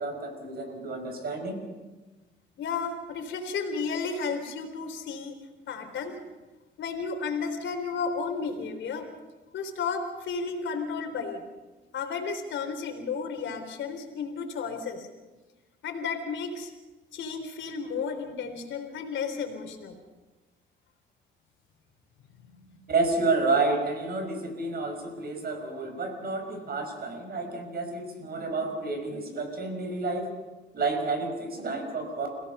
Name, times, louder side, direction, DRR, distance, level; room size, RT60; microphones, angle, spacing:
voice 1, 0.0-1.6 22.9-30.3 30.7-32.3, right 3 dB, 50° right, 5 dB, 5.7 m, -30 dB
voice 2, 2.6-5.4 5.7-6.2 6.8-9.1 9.5-11.4 11.9-15.1 15.8-16.7 17.1-19.9 22.5-22.8, left 5 dB, 70° left, 5 dB, 3.5 m, -33 dB
29.5 x 17.0 x 5.5 m, 1.2 s
cardioid pair, 90°, 20 cm